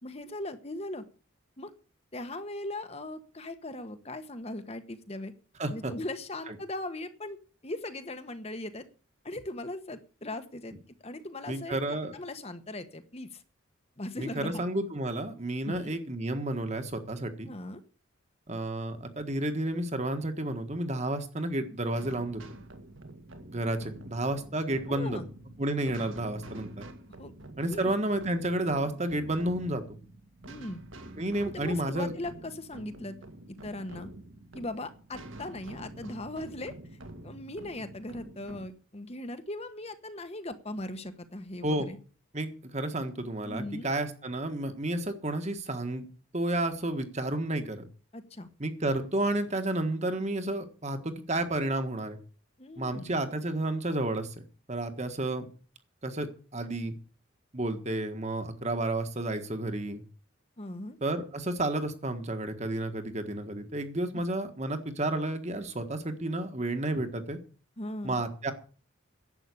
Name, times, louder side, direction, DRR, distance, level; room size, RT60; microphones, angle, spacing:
voice 1, 0.0-1.0 1.6-1.7 2.1-5.3 5.7-8.8 9.2-10.7 11.0-13.4 14.0-14.6 15.6-16.0 17.5-17.8 24.9-25.3 27.2-27.3 27.7-27.9 30.4-30.8 31.4-33.1 33.6-34.1 34.5-36.7 37.2-42.0 43.4-43.9 48.1-48.5 52.6-53.1 60.6-61.0 64.1-64.2 67.8-68.2, left 1 dB, 30° left, 9 dB, 1.1 m, -39 dB
voice 2, 5.6-5.9 6.5-6.6 11.5-12.2 14.2-17.5 18.5-22.4 23.5-25.2 25.6-26.8 27.6-30.0 31.2-32.1 41.6-41.9 42.3-46.1 46.3-47.8 48.6-52.2 52.8-54.3 54.7-55.5 56.0-56.3 56.5-56.9 57.5-60.0 61.0-67.4 68.0-68.5, right 1 dB, 30° right, 8 dB, 1.5 m, -31 dB
sound 1, 21.9-38.7, right 1 dB, 65° right, 2.0 m, -47 dB
11.0 x 8.1 x 8.4 m, 0.39 s
head